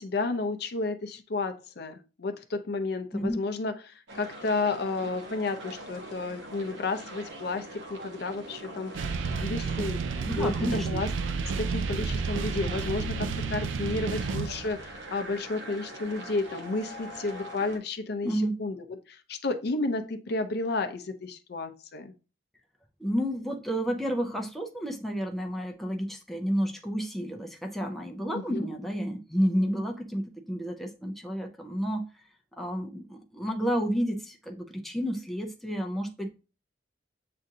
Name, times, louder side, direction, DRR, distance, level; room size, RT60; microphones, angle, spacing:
voice 1, 0.0-11.1 11.6-22.1 28.3-28.7, left 3 dB, 60° left, 0.5 m, -32 dB
sound 1, 4.1-17.8, right 1 dB, 75° right, 1.0 m, -43 dB
sound 2, 8.9-14.9, right 5 dB, 90° right, 0.4 m, -31 dB
voice 2, 10.2-11.0 18.2-18.6 23.0-32.1 32.6-36.3, equal, ahead, 0.5 m, -30 dB
7.5 x 2.5 x 2.7 m
head